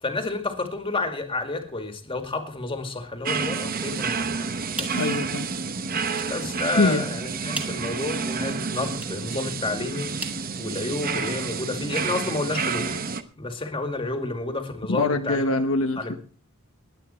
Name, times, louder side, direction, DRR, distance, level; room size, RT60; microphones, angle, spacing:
voice 1, 0.0-4.5 4.7-5.0 6.3-10.1 10.6-15.5 16.0-16.2, left 2 dB, 25° left, 5 dB, 2.2 m, -30 dB
sound 1, 3.2-13.2, right 5 dB, 45° right, 0.9 m, -29 dB
sound 2, 4.5-11.3, right 1 dB, 5° right, 2.1 m, -42 dB
voice 2, 4.9-5.5 6.7-7.1 14.9-16.1, left 2 dB, 70° left, 6 dB, 1.0 m, -23 dB
20.0 x 9.2 x 4.3 m, 0.41 s
head